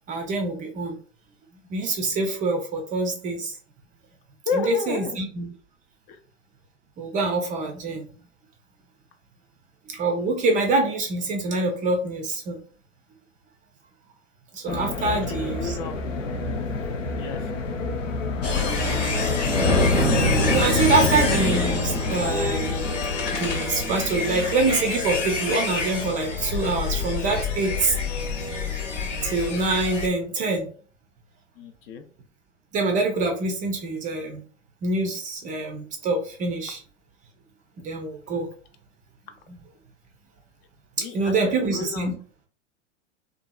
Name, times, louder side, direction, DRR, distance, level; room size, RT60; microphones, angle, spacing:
voice 1, 0.1-1.0 1.7-3.6 4.5-5.5 7.0-8.1 9.9-12.6 14.5-15.8 20.2-22.9 23.4-27.9 29.2-30.7 32.7-34.4 34.8-36.8 37.8-38.5 39.5-39.6 41.0-42.1, right 3 dB, 20° right, 3 dB, 0.4 m, -25 dB
voice 2, 4.5-5.2 6.1-6.2 15.0-16.0 17.2-17.4 18.6-19.0 31.6-32.1 41.0-42.1, left 4 dB, 45° left, 7 dB, 0.5 m, -32 dB
sound 1, 14.7-21.7, left 3 dB, 85° left, 0.6 m, -29 dB
sound 2, 18.4-30.1, left 3 dB, 70° left, 1.1 m, -25 dB
2.6 x 2.4 x 2.2 m, 0.43 s
hypercardioid pair, 105°, 37 cm